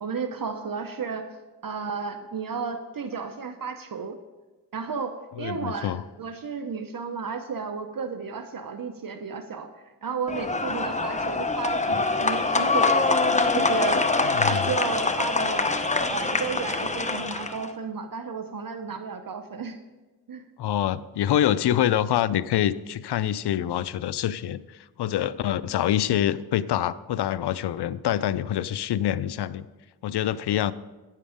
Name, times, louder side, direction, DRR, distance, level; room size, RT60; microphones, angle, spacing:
voice 1, 0.0-1.3 1.6-4.2 4.7-9.7 10.0-13.1 13.5-14.1 14.4-15.6 16.1-19.8 20.3-20.4, right 5 dB, 55° right, 8 dB, 0.8 m, -33 dB
voice 2, 5.4-6.0 14.2-14.6 20.6-29.7 30.0-30.7, left 11 dB, 80° left, 16 dB, 0.5 m, -26 dB
sound 1, 10.3-17.7, left 3 dB, 20° left, 0.8 m, -24 dB
9.9 x 7.5 x 5.0 m, 1.2 s
cardioid pair, 60°, 40 cm